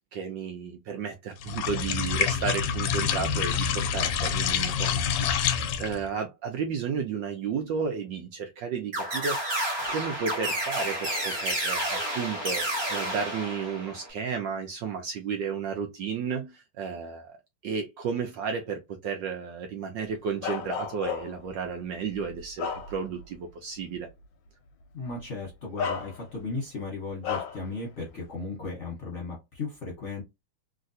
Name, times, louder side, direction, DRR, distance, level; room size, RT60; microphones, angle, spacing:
voice 1, 0.1-9.4 9.9-17.4 17.6-24.1, right 6 dB, 75° right, 1.1 m, -33 dB
sound 1, 1.4-6.0, left 7 dB, 90° left, 1.5 m, -27 dB
sound 2, 8.9-14.1, right 1 dB, 35° right, 1.2 m, -30 dB
Bark, 20.4-21.5 22.1-23.3 23.8-23.9 25.1-25.2 25.8-26.5 27.2-27.7, left 7 dB, 70° left, 1.2 m, -33 dB
voice 2, 24.9-30.2, left 3 dB, 45° left, 1.0 m, -36 dB
3.2 x 2.8 x 2.6 m
omnidirectional pair, 2.4 m